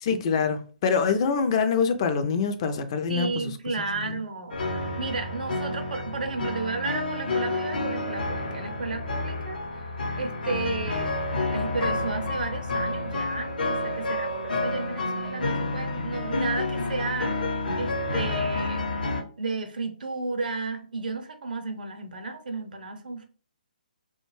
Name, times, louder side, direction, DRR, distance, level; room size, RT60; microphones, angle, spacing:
voice 1, 0.0-3.5 4.0-4.2, left 5 dB, 35° left, 0.4 m, -25 dB
voice 2, 3.1-9.9 10.2-11.1 11.5-18.9 19.4-23.3, right 3 dB, 65° right, 0.6 m, -33 dB
sound 1, 4.5-19.2, left 2 dB, 70° left, 0.7 m, -29 dB
2.4 x 2.1 x 3.1 m
figure-of-eight pair, 140°, 5 cm